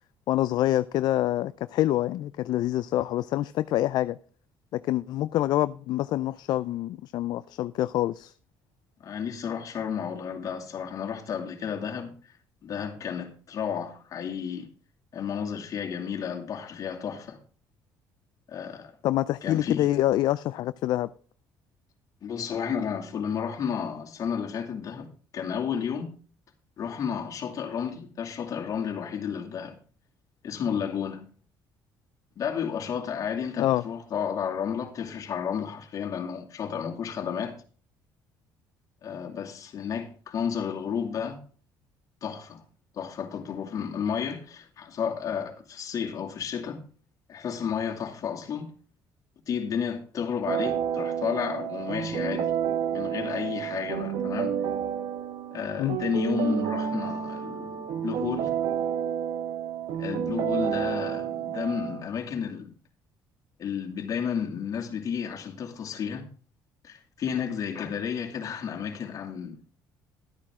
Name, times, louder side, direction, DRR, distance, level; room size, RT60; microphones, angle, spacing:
voice 1, 0.3-4.2 4.7-8.3 19.0-21.1 33.6-33.8 55.8-56.0, left 14 dB, 65° left, 0.4 m, -26 dB
voice 2, 9.0-12.1 12.6-14.7 15.1-17.4 18.5-18.9 19.4-19.9 22.2-26.1 26.8-29.8 30.4-31.3 32.4-37.5 39.0-41.4 42.2-42.6 42.9-46.8 47.3-48.7 49.5-52.5 52.9-54.5 55.5-58.5 60.0-62.7 63.6-66.3 66.8-69.7, left 7 dB, 50° left, 2.5 m, -32 dB
sound 1, 50.5-62.1, right 8 dB, 70° right, 1.2 m, -30 dB
12.5 x 8.9 x 3.7 m
cardioid pair, 115°, 8 cm